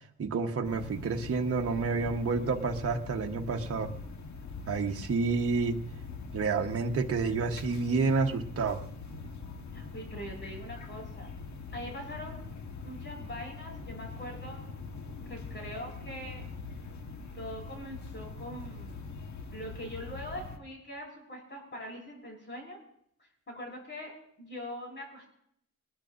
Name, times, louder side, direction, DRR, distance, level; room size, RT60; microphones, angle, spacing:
voice 1, 0.2-3.9 4.7-5.8 6.3-8.8, right 4 dB, 50° right, 2 dB, 1.1 m, -29 dB
sound 1, 0.6-20.6, left 4 dB, 70° left, 1.3 m, -43 dB
voice 2, 9.7-11.3 11.7-12.4 12.8-14.6 15.3-16.4 17.3-19.1 19.5-22.8 23.5-24.1 24.4-25.3, equal, 40° left, 0 dB, 6.4 m, -42 dB
21.0 x 20.5 x 2.5 m, 0.70 s
wide cardioid pair, 160°, 30 cm